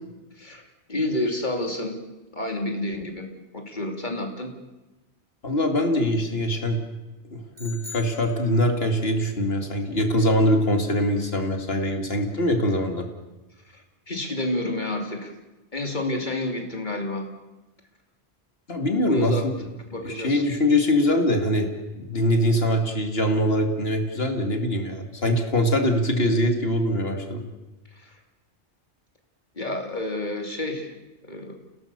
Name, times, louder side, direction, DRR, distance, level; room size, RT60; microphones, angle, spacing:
voice 1, 0.9-2.0 2.3-3.3 3.5-4.5 13.7-15.3 15.7-17.3 19.0-19.5 19.9-20.4 27.9-28.2 29.6-30.9 31.2-31.6, left 1 dB, 45° left, 3 dB, 3.2 m, -29 dB
voice 2, 5.4-6.8 7.3-13.1 18.7-19.5 20.0-21.7 22.0-27.4, left 1 dB, 60° left, 4 dB, 2.9 m, -23 dB
sound 1, 7.5-9.0, left 5 dB, 50° right, 4.0 m, -42 dB
29.0 x 17.5 x 6.9 m, 1.1 s
omnidirectional pair, 1.1 m